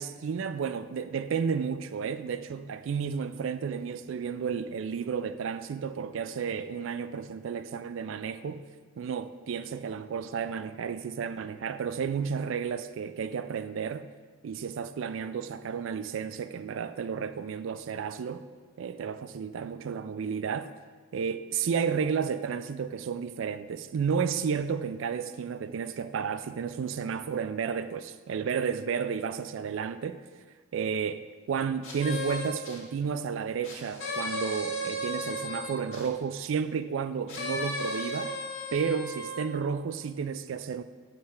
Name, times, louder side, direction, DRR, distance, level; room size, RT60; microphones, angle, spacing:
voice 1, 0.0-8.6 9.0-14.1 14.4-18.4 18.8-20.7 21.1-30.2 30.7-38.3 38.7-40.8, right 6 dB, 70° right, 0.3 m, -32 dB
sound 1, 31.8-32.8 33.6-36.1 37.3-39.5, left 1 dB, 75° left, 2.0 m, -35 dB
7.4 x 3.3 x 5.8 m
head